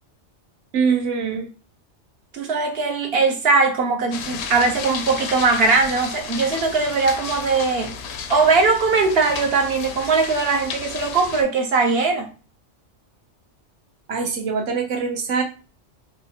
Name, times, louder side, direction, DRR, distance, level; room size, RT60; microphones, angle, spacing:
voice 1, 0.7-1.5 14.1-15.4, right 5 dB, 80° right, 3 dB, 1.1 m, -23 dB
voice 2, 2.3-7.9 8.3-12.3, right 4 dB, 60° right, 4 dB, 0.9 m, -20 dB
sound 1, 4.1-11.4, left 6 dB, 70° left, 0.8 m, -33 dB
4.2 x 2.3 x 2.8 m, 0.35 s
omnidirectional pair, 1.2 m